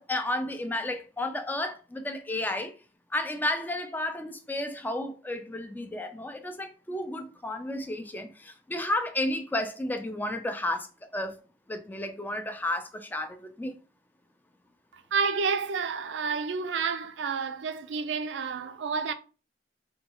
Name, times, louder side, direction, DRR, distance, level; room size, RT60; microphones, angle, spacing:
voice 1, 0.0-2.7 3.1-10.9 11.1-11.4 11.7-13.8, left 1 dB, 10° left, 0.4 m, -32 dB
voice 2, 14.9-19.1, right 5 dB, 80° right, 0.4 m, -30 dB
3.6 x 2.3 x 2.9 m
head